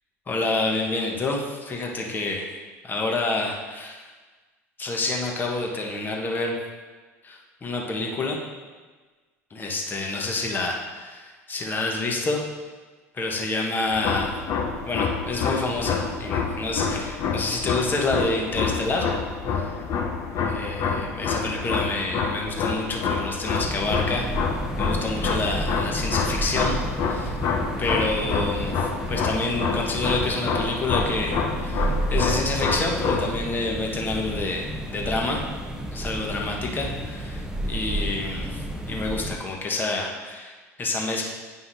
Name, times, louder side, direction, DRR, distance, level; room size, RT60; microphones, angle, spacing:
voice 1, 0.3-2.5 2.8-4.0 4.8-6.5 7.2-8.4 9.5-12.4 13.1-14.3 14.8-19.1 19.5-19.7 20.4-24.3 24.8-26.8 27.1-27.4 27.8-35.4 35.9-38.6 38.9-40.5 40.8-41.2, left 2 dB, 25° left, 0 dB, 1.2 m, -28 dB
sound 1, 13.9-33.3, left 5 dB, 45° left, 0.8 m, -27 dB
sound 2, 23.6-39.4, right 1 dB, 10° right, 0.7 m, -31 dB
9.6 x 5.6 x 2.7 m, 1.4 s
figure-of-eight pair, 70°, 8 cm